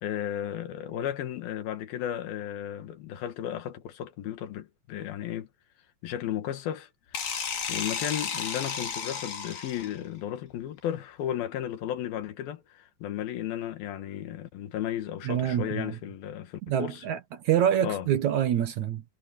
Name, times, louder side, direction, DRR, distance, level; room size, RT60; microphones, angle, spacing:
voice 1, 0.0-5.5 6.0-17.0 17.8-18.1, left 11 dB, 90° left, 3.4 m, -34 dB
sound 1, 7.1-10.1, left 7 dB, 70° left, 4.3 m, -33 dB
voice 2, 15.3-16.0 16.7-17.2 17.4-19.0, right 10 dB, 65° right, 2.3 m, -26 dB
omnidirectional pair, 4.1 m